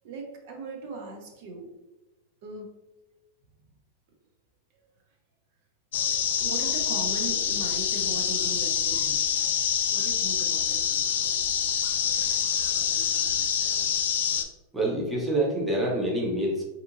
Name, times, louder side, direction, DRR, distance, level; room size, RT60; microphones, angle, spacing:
voice 1, 0.0-1.7 2.4-2.7 4.7-4.8 6.4-9.4 9.9-10.8, right 3 dB, 50° right, 2 dB, 0.6 m, -38 dB
sound 1, 5.9-14.4, left 8 dB, 80° left, 0.3 m, -26 dB
voice 2, 14.7-16.6, right 1 dB, 5° right, -4 dB, 0.6 m, -26 dB
3.6 x 2.8 x 2.5 m, 1.0 s
supercardioid pair, 165°, 0 cm